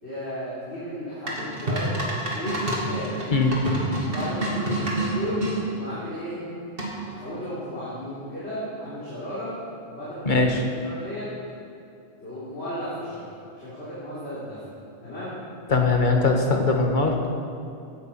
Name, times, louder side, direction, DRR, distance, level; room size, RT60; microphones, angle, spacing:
voice 1, 0.0-3.2 4.0-6.4 7.1-9.5 9.9-11.3 12.2-14.6 15.0-15.4, equal, 75° left, -11 dB, 3.7 m, -34 dB
sound 1, 1.3-5.6 6.8-7.2, right 1 dB, 60° right, 2.3 m, -28 dB
voice 2, 10.2-10.6 15.7-17.3, left 3 dB, 45° left, 2 dB, 1.5 m, -21 dB
16.0 x 9.2 x 5.8 m, 2.5 s
omnidirectional pair, 1.1 m